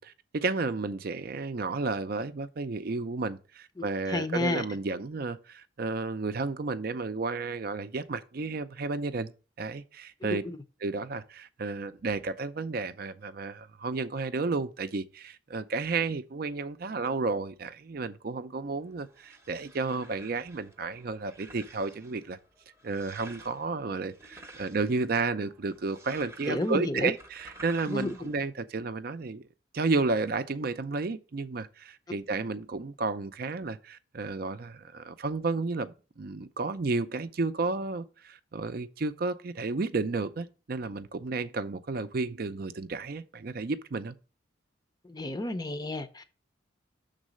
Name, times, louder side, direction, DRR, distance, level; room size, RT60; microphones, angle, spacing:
voice 1, 0.0-9.3 9.6-10.4 10.8-22.4 22.8-29.5 29.7-44.2, right 3 dB, 50° right, 0.5 m, -32 dB
voice 2, 4.1-4.6 10.2-10.6 26.4-27.1 27.9-28.2 45.0-46.2, left 2 dB, 20° left, 0.5 m, -31 dB
sound 1, 18.8-28.5, right 1 dB, 15° right, 0.7 m, -52 dB
6.4 x 3.9 x 6.2 m
head